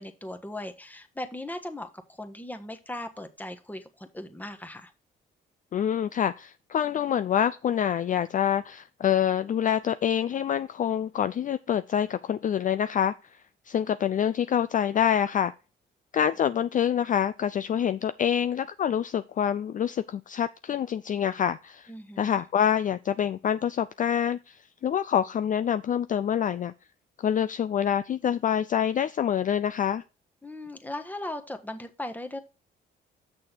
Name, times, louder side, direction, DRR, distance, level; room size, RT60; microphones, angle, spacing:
voice 1, 0.0-4.9 21.9-22.4 30.4-32.4, left 1 dB, 10° left, 1.3 m, -38 dB
voice 2, 5.7-13.1 13.7-15.5 16.1-21.9 22.2-26.7 27.2-30.0, left 9 dB, 40° left, 0.4 m, -26 dB
6.7 x 6.2 x 4.4 m
supercardioid pair, 70°, 20 cm